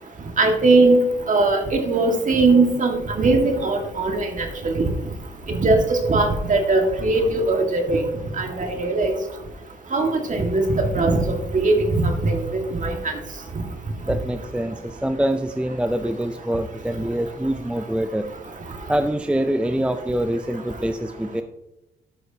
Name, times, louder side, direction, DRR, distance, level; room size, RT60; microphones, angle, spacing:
voice 1, 0.4-1.0 1.3-4.9 5.5-8.0 8.3-9.1 9.9-11.2 11.5-13.1, right 3 dB, 40° right, 3 dB, 1.8 m, -20 dB
voice 2, 14.0-18.3 18.9-21.4, right 1 dB, 5° right, 8 dB, 0.5 m, -25 dB
14.0 x 6.3 x 2.8 m, 0.98 s
cardioid pair, 90°, 20 cm